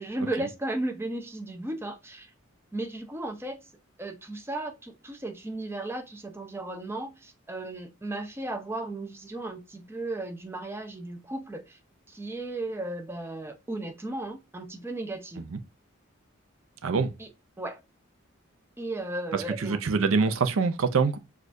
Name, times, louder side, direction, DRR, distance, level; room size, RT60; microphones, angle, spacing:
voice 1, 0.0-2.3 2.7-3.6 4.0-11.8 12.1-15.5 17.2-17.3 17.6-17.8 18.8-19.8, right 2 dB, 10° right, 0.6 m, -35 dB
voice 2, 19.6-21.2, right 4 dB, 80° right, 0.5 m, -24 dB
6.4 x 2.4 x 2.6 m
head